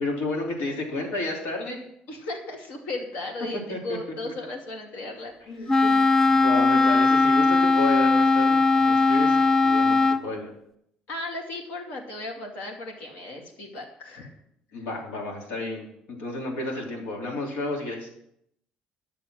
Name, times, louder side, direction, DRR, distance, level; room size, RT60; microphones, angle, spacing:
voice 1, 0.0-1.8 3.7-4.0 4.2-4.3 5.4-5.9 6.2-10.5 14.7-18.1, left 2 dB, 90° left, 0 dB, 3.2 m, -32 dB
voice 2, 2.1-5.8 11.1-14.3, left 2 dB, 65° left, 1 dB, 2.4 m, -36 dB
Wind instrument woodwind instrument, 5.7-10.3, left 3 dB, 15° left, 0.4 m, -19 dB
11.0 x 6.8 x 6.3 m, 0.76 s
cardioid pair, 155°, 3 cm